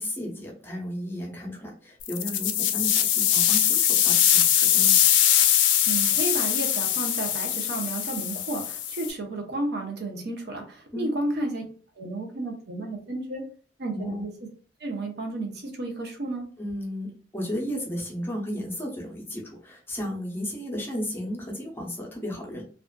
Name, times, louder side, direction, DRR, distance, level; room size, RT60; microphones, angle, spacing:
voice 1, 0.0-5.0 10.9-11.1 13.9-14.2 16.6-22.7, equal, 10° left, -2 dB, 0.6 m, -34 dB
sound 1, 2.0-9.1, left 10 dB, 85° left, 0.4 m, -22 dB
voice 2, 5.9-11.6 12.0-13.4 13.8-14.3 14.8-16.5, right 2 dB, 60° right, 2 dB, 0.6 m, -32 dB
2.4 x 2.4 x 2.2 m, 0.41 s
head